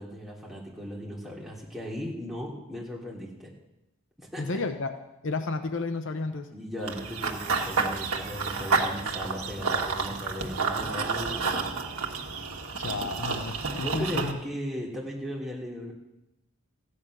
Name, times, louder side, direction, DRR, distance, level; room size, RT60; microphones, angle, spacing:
voice 1, 0.0-3.5 4.2-4.6 6.5-11.7 13.8-15.9, equal, ahead, -5 dB, 3.1 m, -37 dB
voice 2, 4.4-5.0 5.2-6.5 12.8-14.4, left 3 dB, 60° left, 8 dB, 0.8 m, -32 dB
Run / Bird vocalization bird call bird song, 6.9-14.3, right 4 dB, 80° right, 1.6 m, -30 dB
15.0 x 9.9 x 6.2 m, 0.92 s
head